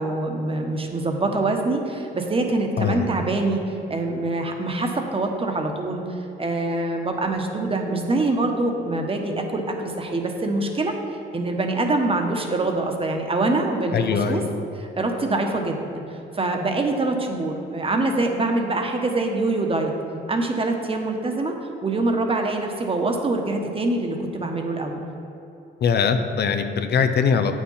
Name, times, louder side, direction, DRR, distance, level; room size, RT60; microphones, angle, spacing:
voice 1, 0.0-3.6 3.9-6.0 6.4-14.4 14.7-16.0 16.3-19.9 20.3-21.5 21.8-25.0, right 2 dB, 30° right, 3 dB, 1.2 m, -24 dB
voice 2, 13.9-14.5 25.8-27.6, left 6 dB, 55° left, 8 dB, 0.7 m, -21 dB
8.1 x 6.4 x 5.6 m, 2.9 s
cardioid pair, 90°, 20 cm